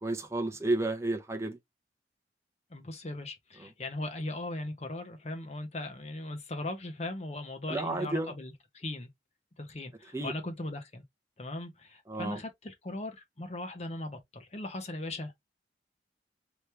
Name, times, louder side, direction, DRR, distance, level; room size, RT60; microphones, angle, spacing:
voice 1, 0.0-1.6 3.6-3.7 7.7-8.3 10.1-10.3 12.1-12.4, right 2 dB, 15° right, 0.7 m, -31 dB
voice 2, 2.7-9.1 9.6-11.0 11.4-15.5, left 2 dB, 35° left, 0.8 m, -39 dB
3.1 x 3.0 x 3.2 m
head